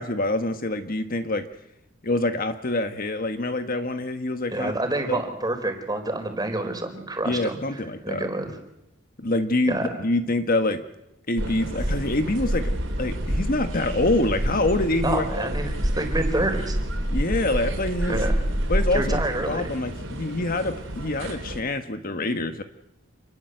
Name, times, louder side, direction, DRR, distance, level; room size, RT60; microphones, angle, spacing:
voice 1, 0.0-1.5 2.0-4.7 5.1-5.2 7.2-8.3 9.2-10.8 11.3-12.7 13.0-15.2 17.1-18.2 18.7-22.6, left 2 dB, 45° left, 8 dB, 1.5 m, -26 dB
voice 2, 4.5-8.5 9.7-9.9 15.0-16.8 18.1-18.3 18.9-19.7, right 2 dB, 20° right, 5 dB, 4.2 m, -28 dB
sound 1, 11.4-21.6, equal, 75° right, 4.8 m, -28 dB
28.0 x 21.0 x 8.0 m, 0.86 s
head